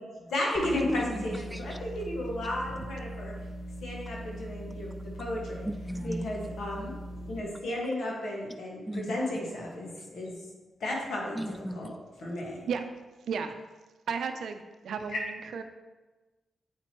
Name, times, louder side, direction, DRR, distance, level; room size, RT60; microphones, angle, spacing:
voice 1, 0.0-3.3 3.8-5.7 6.0-7.0 7.3-10.4 10.8-11.4 11.7-11.9 12.2-12.7 15.1-15.2, left 1 dB, 70° left, -2 dB, 1.7 m, -34 dB
sound 1, 0.5-7.4, right 1 dB, 40° right, 1.2 m, -41 dB
voice 2, 0.9-1.8 5.7-6.3 8.9-9.2 11.3-11.9, equal, ahead, 7 dB, 0.5 m, -35 dB
voice 3, 13.3-13.6 14.1-15.6, right 6 dB, 75° right, 7 dB, 0.5 m, -34 dB
8.1 x 4.3 x 3.0 m, 1.2 s
supercardioid pair, 50°, 0 cm